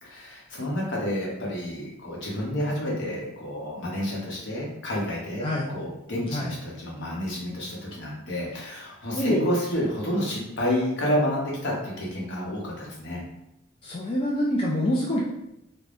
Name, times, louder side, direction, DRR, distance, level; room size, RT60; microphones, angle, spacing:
voice 1, 0.0-13.2, equal, 60° left, -3 dB, 0.9 m, -30 dB
voice 2, 9.1-9.5 13.8-15.2, left 1 dB, 25° left, -4 dB, 0.3 m, -25 dB
3.4 x 2.1 x 2.5 m, 0.84 s
head